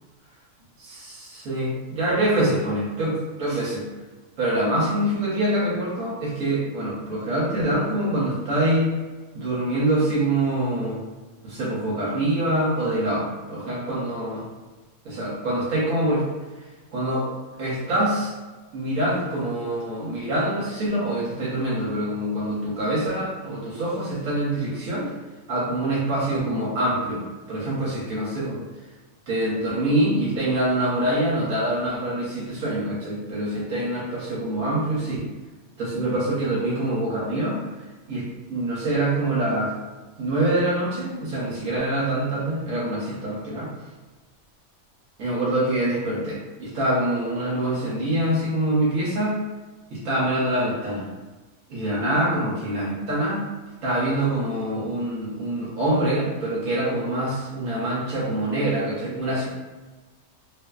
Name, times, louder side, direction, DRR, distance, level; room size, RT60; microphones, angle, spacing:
voice 1, 0.9-3.9 4.4-9.0 9.3-11.0 11.4-14.4 15.0-16.2 16.9-17.3 17.6-18.3 18.7-25.1 25.5-27.2 27.5-28.6 29.3-35.3 35.8-37.6 38.1-39.7 40.2-43.7 45.2-49.4 49.9-51.1 51.7-53.4 53.8-59.5, right 1 dB, 75° right, -7 dB, 1.1 m, -25 dB
2.5 x 2.4 x 2.2 m, 1.2 s
omnidirectional pair, 1.5 m